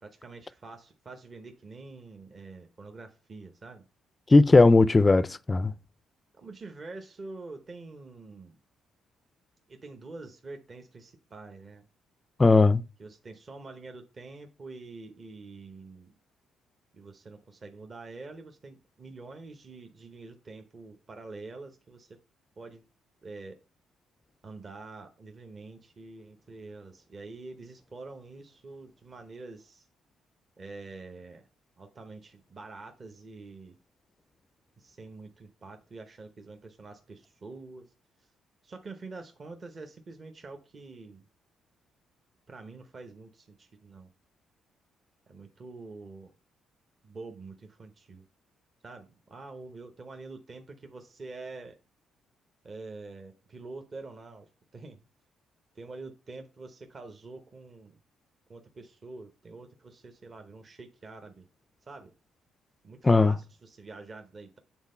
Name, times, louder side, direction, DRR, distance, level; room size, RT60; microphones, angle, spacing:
voice 1, 0.0-3.8 6.3-8.6 9.7-11.9 13.0-16.1 16.9-22.2 22.6-22.9 23.2-23.6 24.4-29.9 30.6-31.5 31.8-33.8 34.8-37.9 38.2-38.3 38.6-41.2 42.5-44.1 45.3-46.3 47.0-48.3 48.8-51.8 52.6-55.0 55.7-58.0 58.5-61.5 61.8-62.1 62.8-64.6, right 3 dB, 35° right, 0.8 m, -46 dB
voice 2, 4.3-5.7 12.4-12.8 63.0-63.3, left 3 dB, 20° left, 0.3 m, -18 dB
7.3 x 3.8 x 5.4 m
cardioid pair, 100°, 0 cm